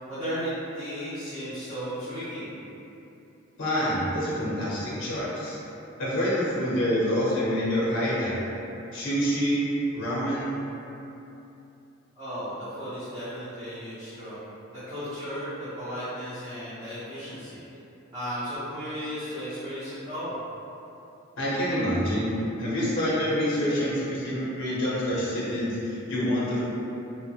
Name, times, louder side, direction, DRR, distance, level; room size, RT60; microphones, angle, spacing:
voice 1, 0.1-2.5 12.2-14.4 14.7-17.6 18.1-20.4, equal, 25° right, -16 dB, 0.7 m, -35 dB
voice 2, 3.6-5.6 6.0-8.4 8.9-9.7 9.9-10.6 21.4-22.3 22.6-26.6, equal, 60° left, -8 dB, 0.6 m, -27 dB
2.9 x 2.0 x 2.7 m, 2.9 s
head